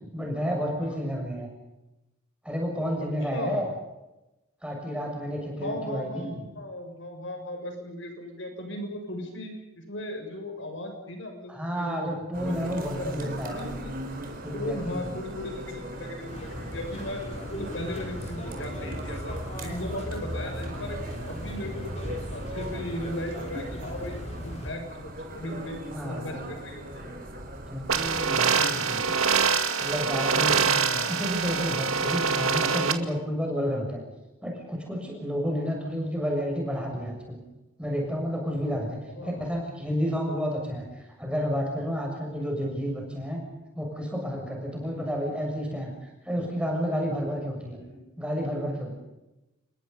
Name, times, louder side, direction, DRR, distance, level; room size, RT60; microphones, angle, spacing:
voice 1, 0.1-1.5 2.4-3.7 4.6-6.4 11.5-13.6 14.4-15.1 25.9-26.4 27.7-29.0 29.8-34.0 34.4-37.4 37.8-43.4 43.8-45.9 46.3-47.8 48.2-48.9, equal, 5° right, 0 dB, 6.9 m, -31 dB
voice 2, 3.3-3.7 5.6-9.5 9.8-12.1 12.4-13.2 13.4-13.9 14.2-27.2 28.5-29.0 30.8-31.1 39.1-39.4 42.3-42.5 44.8-45.1 47.9-48.1, left 1 dB, 60° left, 4 dB, 6.8 m, -37 dB
sound 1, 12.3-28.3, right 1 dB, 45° right, 4.8 m, -39 dB
sound 2, 16.3-24.7, left 1 dB, 30° left, 3.7 m, -37 dB
sound 3, 27.9-32.9, right 5 dB, 85° right, 2.2 m, -25 dB
28.5 x 22.5 x 5.6 m, 0.98 s
head